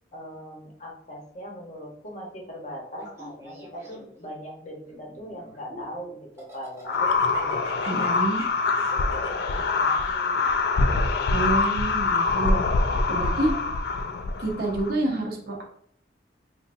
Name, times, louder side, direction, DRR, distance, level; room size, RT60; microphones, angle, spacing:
voice 1, 0.1-8.2 8.9-10.4 13.1-13.8, equal, 40° left, -1 dB, 0.9 m, -40 dB
Laughter, 2.9-4.2 4.9-5.9 6.4-11.4, equal, 15° right, 0.9 m, -45 dB
sound 1, 6.9-14.9, left 3 dB, 60° left, 0.3 m, -24 dB
voice 2, 7.9-8.4 11.3-12.6 13.1-13.5 14.4-15.6, right 2 dB, 55° right, 0 dB, 0.8 m, -27 dB
4.2 x 2.6 x 2.5 m, 0.63 s
head